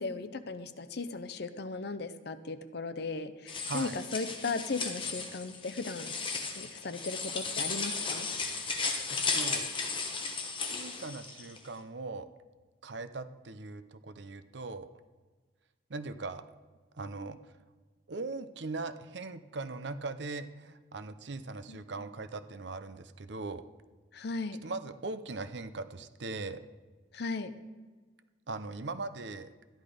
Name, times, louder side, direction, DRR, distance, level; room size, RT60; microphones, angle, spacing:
voice 1, 0.0-6.1 6.6-8.3 21.7-21.8 24.1-24.6 27.1-27.5, left 3 dB, 55° left, 12 dB, 0.6 m, -37 dB
sound 1, 3.5-11.6, left 4 dB, 25° left, 1.1 m, -35 dB
voice 2, 3.6-4.0 9.1-9.7 10.6-12.3 12.8-14.9 15.9-16.4 16.9-17.4 18.1-23.6 24.6-26.6 28.5-29.5, right 3 dB, 60° right, 11 dB, 0.7 m, -40 dB
13.0 x 10.5 x 5.0 m, 1.3 s
head